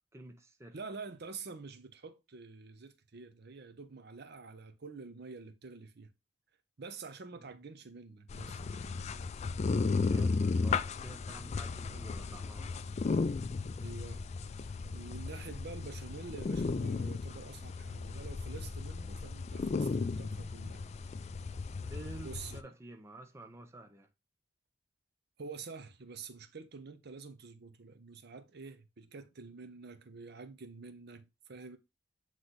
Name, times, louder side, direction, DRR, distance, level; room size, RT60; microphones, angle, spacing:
voice 1, 0.1-0.8 7.4-7.5 10.1-12.7 21.8-24.1, right 2 dB, 15° right, 0.6 m, -50 dB
voice 2, 0.7-6.1 6.8-8.9 13.8-14.3 14.6-20.8 22.2-22.7 25.4-31.8, right 4 dB, 55° right, 0.7 m, -48 dB
sound 1, 8.3-22.6, left 4 dB, 35° left, 0.3 m, -35 dB
7.9 x 3.2 x 4.0 m
head